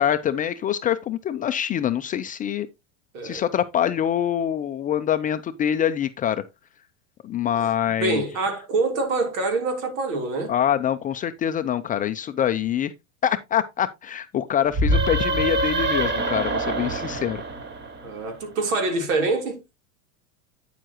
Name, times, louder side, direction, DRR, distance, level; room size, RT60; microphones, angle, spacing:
voice 1, 0.0-2.7 3.2-6.4 7.2-8.2 10.5-12.9 13.2-17.4, left 10 dB, 20° left, 0.4 m, -25 dB
voice 2, 8.0-10.5 18.0-19.6, right 3 dB, 75° right, 3.4 m, -25 dB
sound 1, 14.7-18.3, right 2 dB, 25° right, 1.6 m, -25 dB
9.1 x 7.4 x 2.9 m
supercardioid pair, 120°, 40 cm